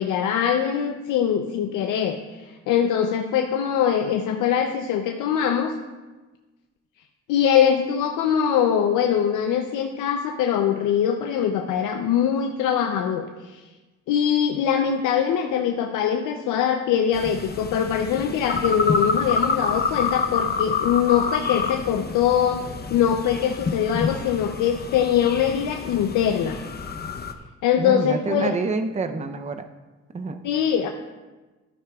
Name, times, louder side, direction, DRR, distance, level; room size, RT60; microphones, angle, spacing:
voice 1, 0.0-5.8 7.3-13.7 14.1-26.6 27.6-28.5 30.4-30.9, left 8 dB, 85° left, 4 dB, 0.6 m, -22 dB
sound 1, 17.1-27.3, left 4 dB, 35° left, 0.8 m, -28 dB
voice 2, 27.8-29.7 30.1-30.4, right 3 dB, 25° right, 8 dB, 0.6 m, -27 dB
12.5 x 9.4 x 2.4 m, 1.2 s
cardioid pair, 90°, 30 cm